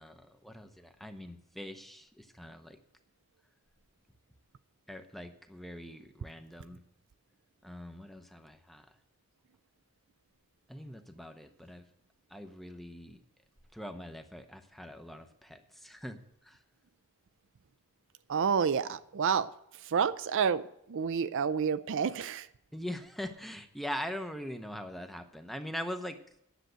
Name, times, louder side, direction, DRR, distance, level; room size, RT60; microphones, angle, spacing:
voice 1, 0.0-2.8 4.9-6.8 7.6-9.0 10.7-11.9 12.3-13.2 13.7-16.6 22.7-26.2, equal, ahead, 7 dB, 0.8 m, -42 dB
voice 2, 18.3-19.5 19.9-20.6 20.9-22.5, right 6 dB, 55° right, 13 dB, 0.4 m, -29 dB
10.0 x 7.5 x 8.0 m, 0.74 s
head